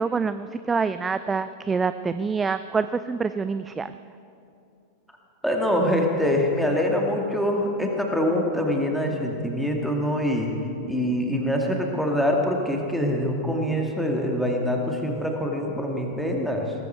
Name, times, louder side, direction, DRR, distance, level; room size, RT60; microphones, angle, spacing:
voice 1, 0.0-3.9, right 5 dB, 15° right, 13 dB, 0.4 m, -26 dB
voice 2, 5.4-10.5 10.9-16.7, equal, ahead, 1 dB, 2.1 m, -24 dB
18.5 x 15.0 x 4.6 m, 2.6 s
figure-of-eight pair, 90°, 0 cm